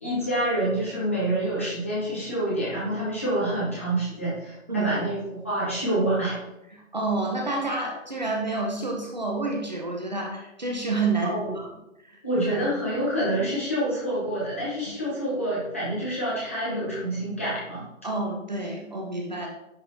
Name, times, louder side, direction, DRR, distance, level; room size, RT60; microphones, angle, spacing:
voice 1, 0.0-6.4 11.2-11.5 12.2-17.9, right 1 dB, 10° left, -9 dB, 0.9 m, -27 dB
voice 2, 6.7-11.7 12.1-12.7 18.0-19.5, right 3 dB, 35° right, 0 dB, 0.8 m, -29 dB
10.0 x 3.9 x 2.7 m, 0.88 s
hypercardioid pair, 175°, 39 cm